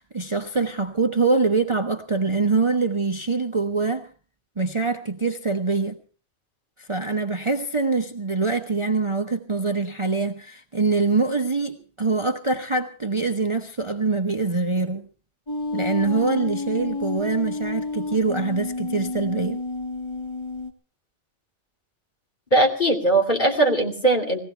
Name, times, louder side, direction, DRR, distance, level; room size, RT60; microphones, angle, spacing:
voice 1, 0.0-4.1 4.6-6.0 6.8-15.0 15.7-19.6, right 3 dB, 30° right, 0.9 m, -24 dB
sound 1, 15.5-20.7, left 3 dB, 25° left, 1.8 m, -30 dB
voice 2, 22.5-24.4, right 2 dB, 40° left, 3.0 m, -20 dB
19.5 x 15.5 x 4.5 m
omnidirectional pair, 1.3 m